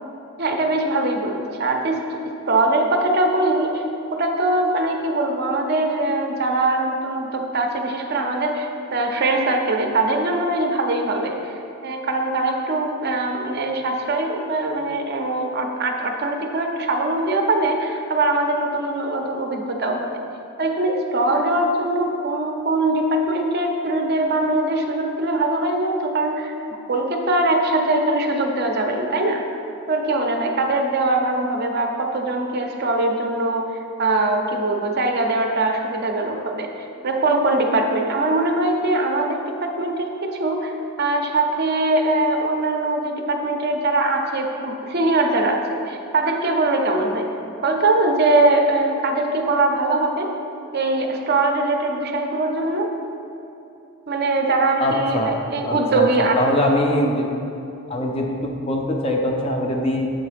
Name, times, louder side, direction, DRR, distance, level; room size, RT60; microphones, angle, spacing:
voice 1, 0.4-2.0 2.5-3.8 4.1-11.5 11.8-20.1 20.6-26.5 26.9-29.4 29.9-33.7 34.0-36.7 37.0-47.3 47.6-50.3 50.7-52.9 54.1-56.4, right 2 dB, 45° right, 3 dB, 0.5 m, -22 dB
voice 2, 54.8-57.3 57.9-60.1, left 1 dB, 25° left, 1 dB, 0.5 m, -23 dB
7.1 x 3.9 x 5.0 m, 2.8 s
head